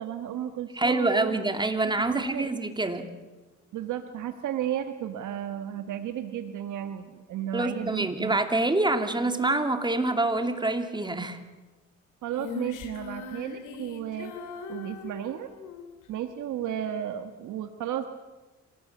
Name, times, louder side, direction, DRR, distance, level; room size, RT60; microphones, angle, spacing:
voice 1, 0.0-1.4 1.8-2.6 3.7-8.4 12.2-14.3 14.7-15.5 16.1-18.1, right 10 dB, 80° right, 9 dB, 1.4 m, -33 dB
voice 2, 0.8-3.1 7.5-11.4, right 2 dB, 15° right, 7 dB, 2.8 m, -26 dB
Female singing, 12.3-15.9, left 5 dB, 85° left, 3.1 m, -40 dB
26.5 x 18.0 x 8.7 m, 1.2 s
cardioid pair, 90°, 30 cm